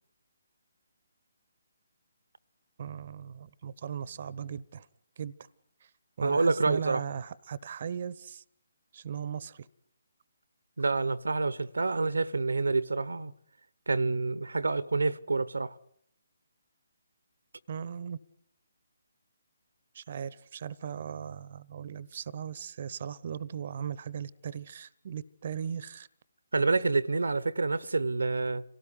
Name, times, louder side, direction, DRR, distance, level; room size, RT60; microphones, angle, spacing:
voice 1, 2.8-4.9 5.2-5.3 6.2-8.4 8.9-9.7 17.7-18.2 19.9-26.1, right 8 dB, 45° right, 1.0 m, -38 dB
voice 2, 6.2-7.0 10.8-13.3 13.9-15.7 26.5-28.6, right 3 dB, 70° right, 1.0 m, -28 dB
27.5 x 18.0 x 9.9 m
figure-of-eight pair, 140°, 0 cm